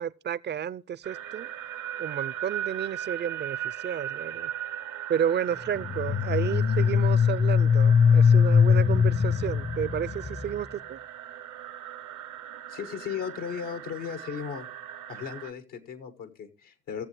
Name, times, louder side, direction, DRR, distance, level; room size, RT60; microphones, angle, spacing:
voice 1, 0.0-1.5 2.0-4.5 5.1-11.0, right 9 dB, 35° right, 0.5 m, -31 dB
sound 1, 1.0-15.5, right 10 dB, 70° right, 0.9 m, -38 dB
sound 2, 5.7-10.6, left 6 dB, 30° left, 0.7 m, -21 dB
voice 2, 12.7-14.7 15.1-17.0, left 7 dB, 75° left, 1.4 m, -36 dB
18.0 x 7.2 x 3.2 m
hypercardioid pair, 55°, 32 cm